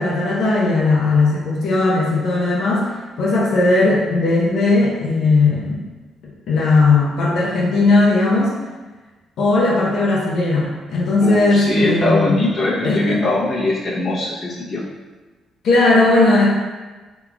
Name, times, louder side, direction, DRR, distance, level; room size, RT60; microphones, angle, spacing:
voice 1, 0.0-5.8 6.5-8.5 9.4-12.4 12.8-13.2 15.6-16.5, left 3 dB, 75° left, -5 dB, 0.7 m, -17 dB
voice 2, 11.2-14.8, left 2 dB, 45° left, -6 dB, 0.8 m, -21 dB
3.6 x 2.9 x 2.3 m, 1.3 s
cardioid pair, 90°, 0 cm